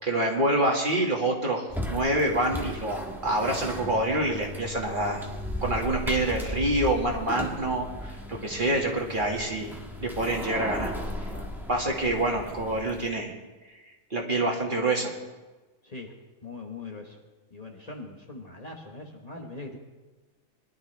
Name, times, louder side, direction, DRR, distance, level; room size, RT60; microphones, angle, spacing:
voice 1, 0.0-5.2 5.6-9.7 10.0-10.9 11.7-13.3 14.1-15.1, right 1 dB, 35° right, 0 dB, 2.0 m, -26 dB
sound 1, 1.7-13.1, left 1 dB, ahead, 1.3 m, -36 dB
voice 2, 16.4-17.2 17.5-19.8, left 3 dB, 30° left, 0 dB, 1.4 m, -41 dB
22.0 x 12.0 x 3.3 m, 1.3 s
omnidirectional pair, 1.4 m